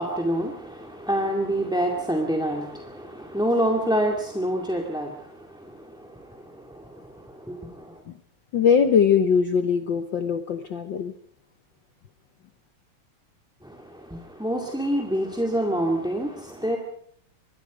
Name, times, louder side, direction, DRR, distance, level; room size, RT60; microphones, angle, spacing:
voice 1, 0.0-8.0 13.6-16.8, right 1 dB, ahead, 0 dB, 1.6 m, -27 dB
voice 2, 8.5-11.1, left 7 dB, 70° left, 8 dB, 1.1 m, -21 dB
25.5 x 21.5 x 5.1 m, 0.66 s
omnidirectional pair, 3.4 m